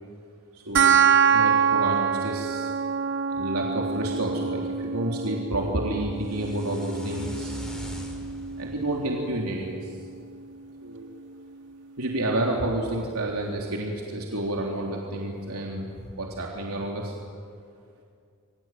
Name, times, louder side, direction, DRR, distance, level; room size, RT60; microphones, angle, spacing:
voice 1, 0.5-1.0 1.3-2.7 3.3-7.6 8.6-9.9 10.8-11.1 12.0-15.9 16.2-17.1, right 1 dB, 85° right, -1 dB, 3.4 m, -30 dB
sound 1, 0.7-11.7, right 7 dB, 55° right, 1.1 m, -26 dB
sound 2, 6.2-10.3, equal, 5° left, 4.3 m, -41 dB
27.5 x 23.5 x 9.2 m, 2.3 s
head